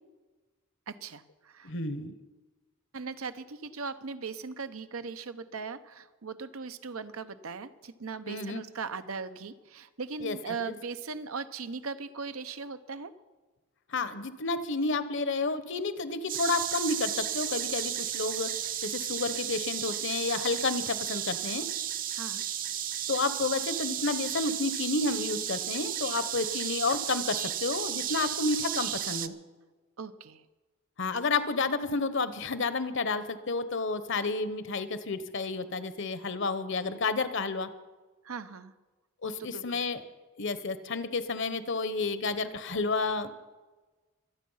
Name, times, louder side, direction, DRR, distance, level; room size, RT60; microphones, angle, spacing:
voice 1, 0.9-1.7 2.9-13.1 22.1-22.4 30.0-30.4 38.2-38.7 39.2-39.6, right 5 dB, 85° right, 11 dB, 0.8 m, -39 dB
voice 2, 1.6-2.1 8.3-8.6 10.2-10.5 13.9-18.5 18.8-21.7 23.1-29.3 31.0-37.7 39.2-40.0 40.4-43.3, left 3 dB, 60° left, 13 dB, 1.0 m, -31 dB
sound 1, 16.3-29.3, right 10 dB, 40° right, 0.6 m, -33 dB
24.5 x 8.5 x 5.6 m, 1.3 s
head